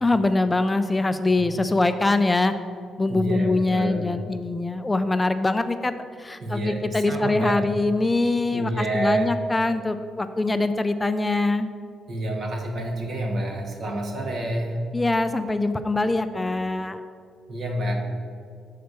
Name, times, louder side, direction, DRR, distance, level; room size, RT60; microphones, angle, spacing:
voice 1, 0.0-2.5 3.0-11.7 14.9-17.0, left 2 dB, 15° left, 10 dB, 0.3 m, -23 dB
voice 2, 3.1-4.0 6.4-7.7 8.5-9.4 12.1-14.8 17.5-17.9, right 1 dB, 60° right, 1 dB, 1.5 m, -28 dB
6.6 x 4.4 x 6.7 m, 2.2 s
cardioid pair, 90°, 0 cm